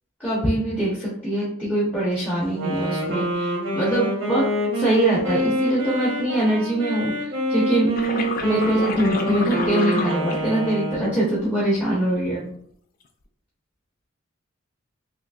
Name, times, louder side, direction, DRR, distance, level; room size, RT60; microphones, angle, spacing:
voice 1, 0.2-4.5 4.7-7.9 8.4-12.5, right 1 dB, 5° left, -9 dB, 1.0 m, -23 dB
Wind instrument woodwind instrument, 2.5-11.4, right 1 dB, 75° right, 1.3 m, -26 dB
sound 1, 8.0-10.9 11.8-12.2, left 3 dB, 45° left, 0.4 m, -30 dB
5.8 x 2.0 x 2.4 m, 0.64 s
head